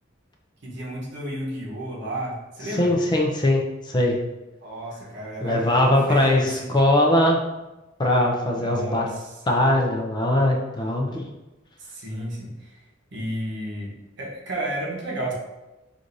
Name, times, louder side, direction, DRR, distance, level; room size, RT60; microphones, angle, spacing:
voice 1, 0.6-2.9 4.6-6.7 8.6-9.4 11.8-12.8 13.1-15.3, right 1 dB, 65° right, -3 dB, 1.0 m, -32 dB
voice 2, 2.8-4.2 5.4-7.4 8.0-9.1 9.5-11.3, left 1 dB, 20° left, 0 dB, 0.5 m, -21 dB
6.1 x 2.5 x 2.6 m, 1.0 s
head